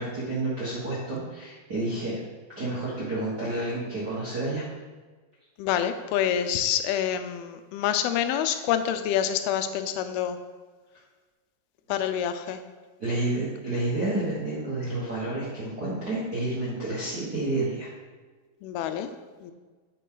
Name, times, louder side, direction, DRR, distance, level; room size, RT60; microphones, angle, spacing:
voice 1, 0.0-2.2 2.6-4.6 13.0-17.9, right 2 dB, 55° right, -9 dB, 1.1 m, -30 dB
voice 2, 5.6-10.4 11.9-12.6 18.6-19.1 19.4-19.5, left 9 dB, 90° left, 9 dB, 2.5 m, -27 dB
9.1 x 5.4 x 3.9 m, 1.4 s
omnidirectional pair, 4.3 m